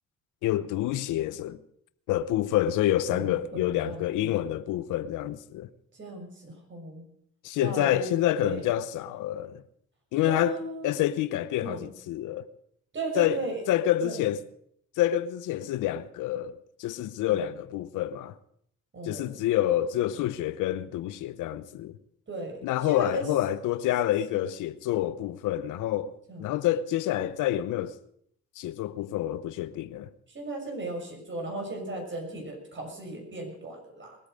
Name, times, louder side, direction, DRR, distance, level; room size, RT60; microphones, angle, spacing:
voice 1, 0.4-1.6 2.1-5.7 7.4-9.6 10.1-10.6 10.8-12.5 13.2-13.4 13.7-14.4 15.0-18.3 19.0-22.0 22.6-27.9 28.6-30.1, left 13 dB, 90° left, 0.8 m, -28 dB
voice 2, 3.1-4.3 5.9-7.0 7.6-8.7 10.3-10.9 11.6-11.9 12.9-13.6 14.0-14.2 17.3-17.4 18.9-19.4 22.3-23.3 24.3-24.4 26.3-26.5 30.3-34.2, right 2 dB, 40° right, 6.3 m, -36 dB
21.0 x 8.6 x 6.5 m
cardioid pair, 90°, 30 cm